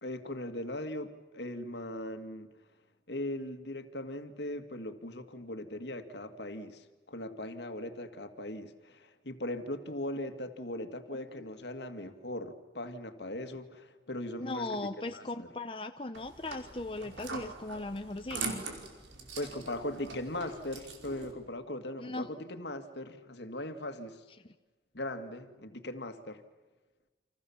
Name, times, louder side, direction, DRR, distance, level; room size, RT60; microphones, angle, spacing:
voice 1, 0.0-2.5 3.1-14.7 15.1-15.5 19.4-24.3 24.9-26.4, left 1 dB, 75° left, 2.1 m, -39 dB
voice 2, 14.4-18.6 22.0-22.3, left 2 dB, 30° left, 0.9 m, -38 dB
sound 1, 16.1-21.3, right 4 dB, 85° right, 4.7 m, -42 dB
30.0 x 27.0 x 7.3 m
head